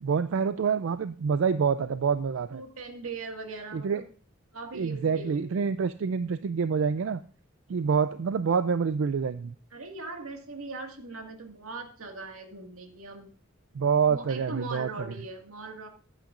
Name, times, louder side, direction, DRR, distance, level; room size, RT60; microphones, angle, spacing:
voice 1, 0.0-2.6 3.7-4.0 4.7-7.2 7.7-9.5 13.7-14.9, right 6 dB, 65° right, 12 dB, 0.4 m, -27 dB
voice 2, 2.5-4.1 4.5-5.7 9.7-13.3 14.1-15.9, right 3 dB, 85° right, 4 dB, 1.9 m, -40 dB
15.5 x 8.8 x 2.5 m, 0.43 s
head